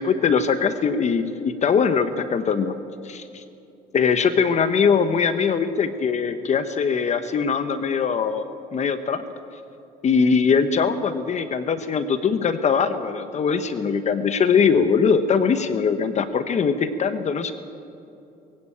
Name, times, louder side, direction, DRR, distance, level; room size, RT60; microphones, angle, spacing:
voice 1, 0.0-2.7 3.0-3.4 3.9-8.4 8.7-9.2 10.0-17.5, left 6 dB, 45° left, 10 dB, 1.1 m, -21 dB
21.5 x 16.5 x 8.8 m, 2.7 s
cardioid pair, 110°, 17 cm